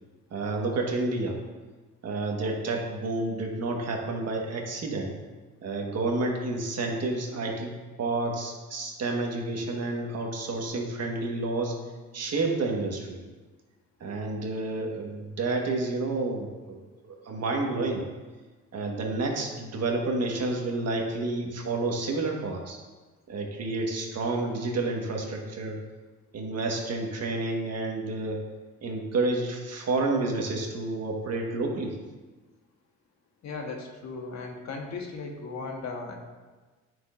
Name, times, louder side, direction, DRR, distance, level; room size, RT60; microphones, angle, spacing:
voice 1, 0.3-1.3 2.0-5.1 5.6-7.7 8.0-11.7 12.1-13.2 14.0-18.0 18.7-22.8 23.3-25.8 26.3-28.4 28.8-32.0, right 2 dB, 55° right, 0 dB, 1.5 m, -30 dB
voice 2, 33.4-36.2, left 4 dB, 60° left, 2 dB, 1.3 m, -37 dB
9.1 x 6.3 x 2.6 m, 1.3 s
cardioid pair, 90°, 30 cm